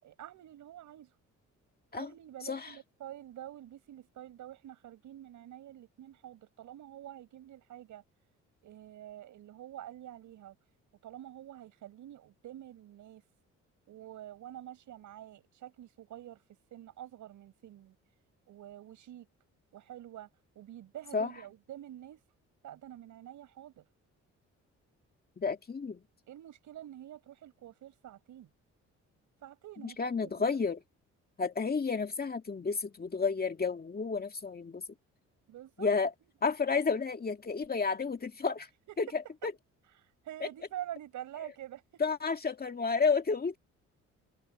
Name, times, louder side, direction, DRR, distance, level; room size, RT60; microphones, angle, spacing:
voice 1, 0.0-1.2 1.9-8.0 8.6-10.6 11.0-13.2 13.9-16.4 16.7-18.0 18.5-19.3 19.7-20.3 20.6-22.2 22.6-23.9 26.3-28.5 29.4-30.7 35.5-35.9 38.9-39.0 40.0-42.0, right 12 dB, 75° right, 5.4 m, -47 dB
voice 2, 25.4-26.0 29.8-30.8 31.4-34.8 35.8-36.1 36.4-38.7 39.0-39.5 40.4-40.5 42.0-43.6, left 5 dB, 30° left, 2.2 m, -31 dB
open air
cardioid pair, 90°, 30 cm